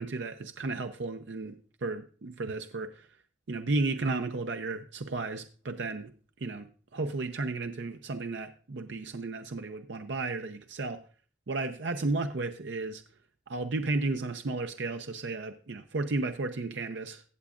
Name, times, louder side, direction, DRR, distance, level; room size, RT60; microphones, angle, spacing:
voice 1, 0.0-3.1 3.5-11.0 11.5-13.0 13.5-17.2, right 3 dB, 70° right, 7 dB, 0.6 m, -33 dB
17.0 x 7.1 x 2.5 m, 0.40 s
head